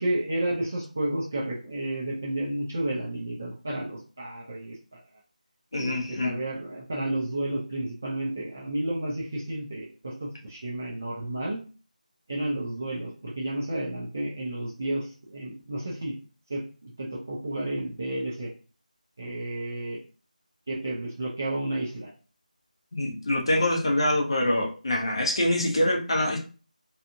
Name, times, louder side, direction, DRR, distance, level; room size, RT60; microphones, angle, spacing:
voice 1, 0.0-5.0 5.8-11.6 12.3-16.2 16.5-18.5 19.2-20.0 20.7-22.1, right 1 dB, 20° right, -4 dB, 0.3 m, -31 dB
voice 2, 5.7-6.3 22.9-26.4, left 1 dB, 35° left, 0 dB, 0.6 m, -25 dB
2.6 x 2.4 x 2.6 m, 0.36 s
figure-of-eight pair, 175°, 5 cm